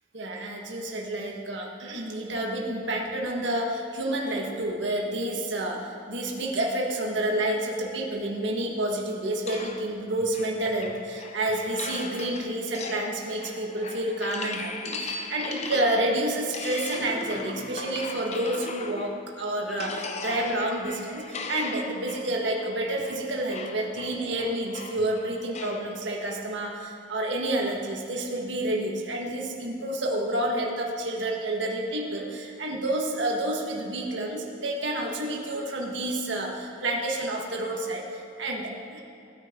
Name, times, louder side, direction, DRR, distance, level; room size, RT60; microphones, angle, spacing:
voice 1, 0.1-39.0, right 1 dB, 65° right, -1 dB, 1.6 m, -29 dB
sound 1, 9.5-19.3 19.7-25.9, left 3 dB, 35° left, 0.7 m, -38 dB
19.0 x 9.6 x 3.8 m, 2.7 s
head